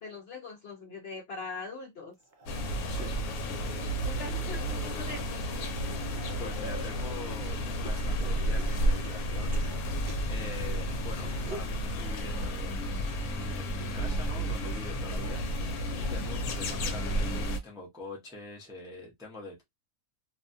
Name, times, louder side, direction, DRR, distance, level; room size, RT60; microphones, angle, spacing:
voice 1, 0.0-2.2 4.0-5.5, left 3 dB, 55° left, 0.8 m, -41 dB
sound 1, 2.2-4.5 5.0-7.0 7.8-10.6 11.1-11.8 13.0-15.8 16.2-16.6 17.8-17.9, right 3 dB, 60° right, 0.5 m, -49 dB
sound 2, 2.5-17.6, equal, 80° left, 1.1 m, -32 dB
voice 2, 6.4-9.5 10.3-13.1 13.5-15.4 15.9-19.6, left 3 dB, 5° right, 0.5 m, -44 dB
2.6 x 2.2 x 2.6 m
omnidirectional pair, 1.5 m